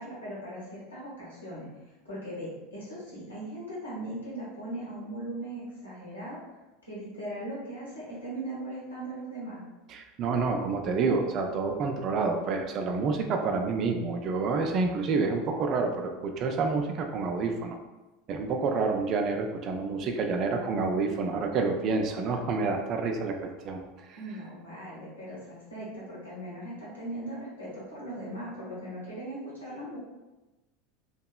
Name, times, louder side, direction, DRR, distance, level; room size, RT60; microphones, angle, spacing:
voice 1, 0.0-1.7 2.0-6.4 6.9-9.6 24.2-30.0, right 1 dB, 75° left, -7 dB, 1.2 m, -39 dB
voice 2, 9.9-17.8 18.3-23.8 24.1-24.2, right 4 dB, 40° right, 4 dB, 0.4 m, -28 dB
2.9 x 2.8 x 2.2 m, 1.1 s
figure-of-eight pair, 75°, 0 cm